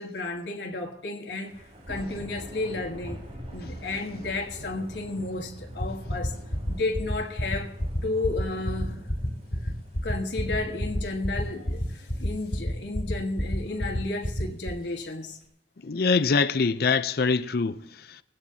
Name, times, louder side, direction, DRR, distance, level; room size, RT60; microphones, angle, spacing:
voice 1, 0.0-1.5 1.9-3.2 3.5-6.3 6.7-7.7 8.0-9.0 10.0-15.4, left 2 dB, 70° left, 1.4 m, -32 dB
Thunder / Rain, 1.5-15.5, equal, 40° right, 3.7 m, -44 dB
sound 1, 5.8-14.7, equal, 40° left, 4.6 m, -27 dB
voice 2, 15.8-18.2, left 4 dB, 55° left, 0.5 m, -24 dB
18.5 x 16.0 x 2.8 m
head